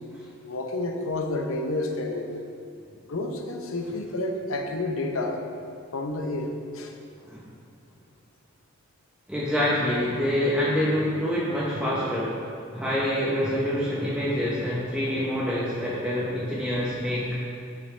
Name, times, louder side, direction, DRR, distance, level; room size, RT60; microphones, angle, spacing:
voice 1, 0.4-2.4 3.1-5.4 5.9-6.9, left 2 dB, 85° left, 3 dB, 0.7 m, -30 dB
voice 2, 9.3-12.4 12.7-17.3, equal, 5° right, -8 dB, 0.9 m, -26 dB
9.3 x 5.5 x 3.3 m, 2.6 s
head